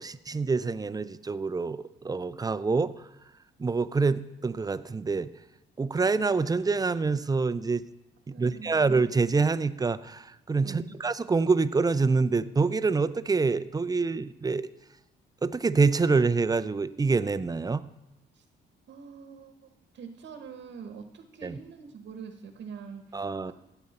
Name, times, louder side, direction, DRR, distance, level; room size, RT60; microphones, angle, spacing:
voice 1, 0.0-2.9 3.6-5.3 5.8-7.8 8.3-14.7 15.4-17.8 21.4-21.6 23.1-23.5, right 4 dB, 20° right, 14 dB, 0.5 m, -26 dB
voice 2, 8.3-8.8 10.6-11.0 18.3-18.4 18.9-19.7 19.9-23.5, right 6 dB, 65° right, 6 dB, 1.1 m, -44 dB
15.5 x 8.0 x 4.2 m, 0.94 s
cardioid pair, 90°, 20 cm